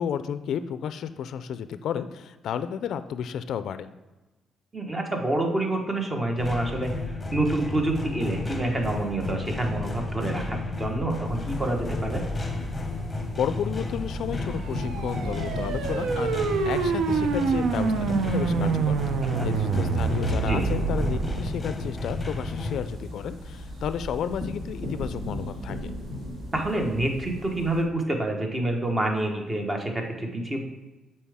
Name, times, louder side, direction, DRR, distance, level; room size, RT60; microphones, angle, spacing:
voice 1, 0.0-3.9 13.3-19.0 19.4-25.8, left 8 dB, 70° left, 12 dB, 0.3 m, -32 dB
voice 2, 4.7-6.9 7.3-12.2 19.2-19.5 20.5-20.7 26.5-30.6, right 2 dB, 25° right, 3 dB, 1.2 m, -27 dB
sound 1, 6.4-22.8, left 2 dB, 20° left, 1.0 m, -32 dB
sound 2, 11.2-27.8, left 1 dB, 65° right, 1.8 m, -38 dB
sound 3, 14.6-21.5, right 5 dB, 85° right, 0.5 m, -27 dB
7.1 x 4.4 x 3.5 m, 1.1 s
cardioid pair, 90°, 0 cm